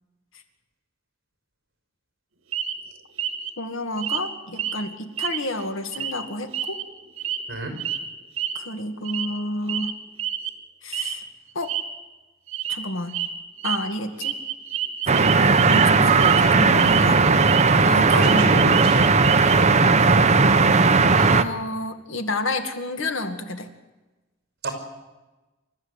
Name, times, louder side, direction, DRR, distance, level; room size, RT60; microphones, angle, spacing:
sound 1, 2.5-2.8 3.2-3.5 4.0-4.2 4.5-4.8 5.2-5.6 5.9-6.1 6.5-7.4 7.8-8.0 8.4-8.6 9.0-9.4 9.7-9.9 10.2-10.5 10.9-11.1 11.5-11.8 12.5-12.8 13.1-13.3 13.6-13.8 14.2-15.8 16.1-16.4 16.7-17.6 17.9-19.6, right 10 dB, 85° right, 1.6 m, -28 dB
voice 1, 3.6-6.8 8.5-9.9 10.8-11.2 11.5-11.8 12.7-13.2 13.6-14.4 15.1-15.3 15.7-17.3 17.8-18.9 21.2-23.7, left 1 dB, 75° left, 7 dB, 2.0 m, -30 dB
sound 2, 15.1-21.4, right 4 dB, 35° right, 0.9 m, -17 dB
voice 2, 18.1-18.9 19.6-19.9 24.6-24.7, right 2 dB, 55° right, 5 dB, 5.2 m, -29 dB
28.5 x 13.5 x 8.2 m, 1.1 s
head